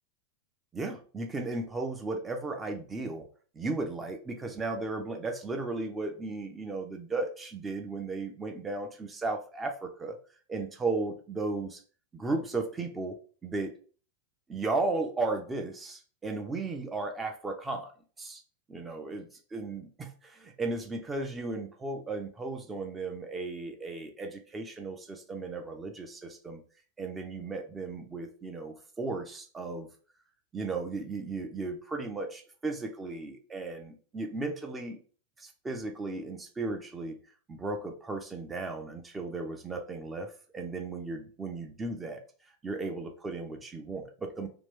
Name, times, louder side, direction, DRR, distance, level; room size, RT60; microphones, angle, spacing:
voice 1, 0.7-3.3 3.5-10.2 10.5-11.8 12.1-13.7 14.5-17.9 18.2-18.4 18.7-26.6 27.0-29.9 30.5-35.0 35.4-37.2 37.5-42.2 42.6-44.5, right 3 dB, 15° right, 4 dB, 0.6 m, -35 dB
2.9 x 2.4 x 3.5 m, 0.40 s
figure-of-eight pair, 90°, 0 cm